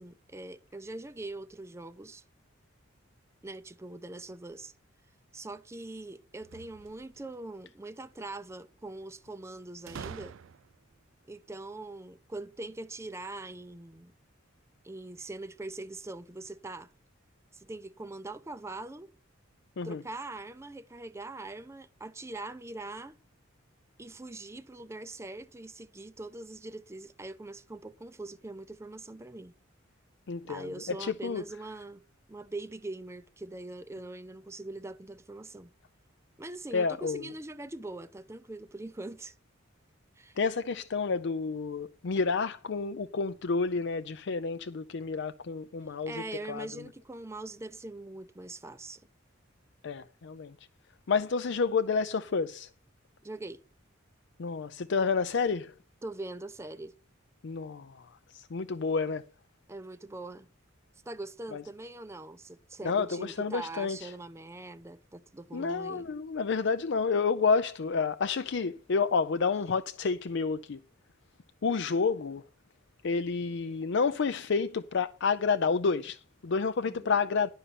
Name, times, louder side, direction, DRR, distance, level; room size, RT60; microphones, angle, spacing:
voice 1, 0.0-2.2 3.4-4.7 5.3-10.4 11.3-14.1 14.8-16.9 17.5-19.1 19.8-23.1 24.0-29.5 30.4-32.0 32.3-35.7 36.4-39.4 40.2-40.4 46.1-49.1 53.2-53.6 56.0-56.9 59.7-60.5 61.1-66.1 76.9-77.1, right 2 dB, 15° right, 0.5 m, -42 dB
sound 1, 6.4-7.4 9.9-10.9, right 6 dB, 75° right, 0.4 m, -45 dB
voice 2, 30.3-30.7 31.0-31.4 36.7-37.3 40.4-46.2 46.5-46.7 49.8-50.5 51.1-52.7 54.4-55.7 57.4-59.2 61.5-61.6 62.8-64.1 65.5-70.8 71.6-72.4 73.0-77.5, left 5 dB, 60° left, 0.5 m, -29 dB
11.0 x 5.5 x 6.8 m
head